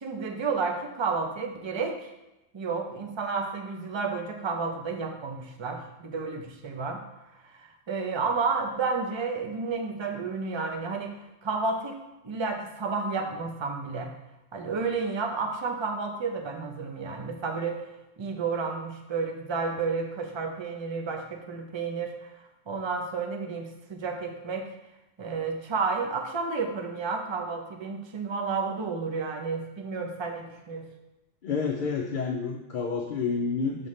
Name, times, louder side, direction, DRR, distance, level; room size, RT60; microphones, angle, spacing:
voice 1, 0.0-2.1 2.5-7.0 7.5-11.2 11.4-12.0 12.2-14.1 14.5-17.8 18.2-22.3 22.7-24.7 25.2-30.9, right 4 dB, 30° right, 3 dB, 0.6 m, -31 dB
voice 2, 31.4-33.9, left 5 dB, 55° left, 1 dB, 0.6 m, -29 dB
6.9 x 5.5 x 3.2 m, 0.97 s
omnidirectional pair, 1.3 m